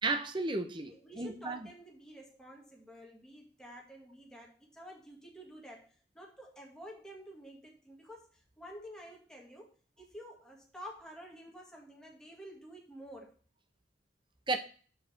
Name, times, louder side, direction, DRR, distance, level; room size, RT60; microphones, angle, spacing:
voice 1, 0.0-1.7 14.5-14.6, right 3 dB, 25° right, 0.7 m, -33 dB
voice 2, 0.9-13.3, equal, 5° left, 1.8 m, -50 dB
6.4 x 4.8 x 5.8 m
head